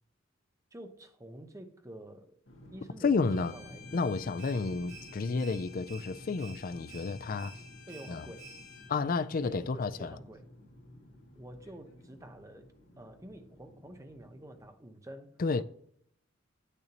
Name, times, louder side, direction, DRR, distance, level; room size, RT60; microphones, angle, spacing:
voice 1, 0.7-2.3 2.7-3.8 7.9-8.5 9.4-10.5 11.3-15.6, right 1 dB, 15° right, 0.8 m, -48 dB
sound 1, 2.4-14.6, left 1 dB, 70° left, 1.9 m, -53 dB
voice 2, 3.0-3.5 3.9-7.6 8.1-8.3 8.9-10.2 15.4-15.6, left 4 dB, 45° left, 0.4 m, -31 dB
Bowed string instrument, 3.2-9.0, left 9 dB, 85° left, 2.2 m, -54 dB
sound 2, 4.4-9.0, right 5 dB, 75° right, 2.9 m, -53 dB
8.4 x 6.7 x 2.9 m
head